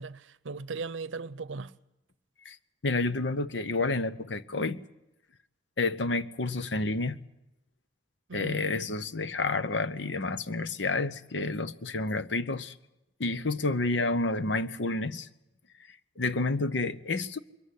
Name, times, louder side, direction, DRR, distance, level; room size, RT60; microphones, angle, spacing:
voice 1, 0.0-1.7 8.3-8.9, right 4 dB, 85° right, 0.7 m, -38 dB
voice 2, 2.8-4.8 5.8-7.2 8.3-12.7 13.2-15.3 16.2-17.4, left 3 dB, 70° left, 0.9 m, -29 dB
23.0 x 15.0 x 9.6 m
head